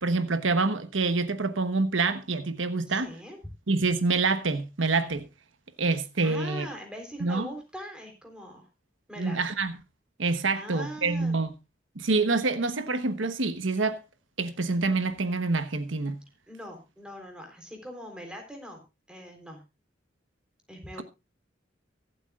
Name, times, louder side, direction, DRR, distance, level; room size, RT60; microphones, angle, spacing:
voice 1, 0.0-3.1 3.7-5.2 5.8-6.7 7.2-7.5 9.2-9.7 10.2-11.5 12.0-14.0 14.4-16.2, right 3 dB, 90° right, 1.2 m, -26 dB
voice 2, 2.8-3.4 6.2-8.7 9.1-9.4 10.5-11.4 16.5-18.8 19.1-19.6 20.7-21.0, equal, 5° right, 3.7 m, -42 dB
23.5 x 8.3 x 2.4 m
head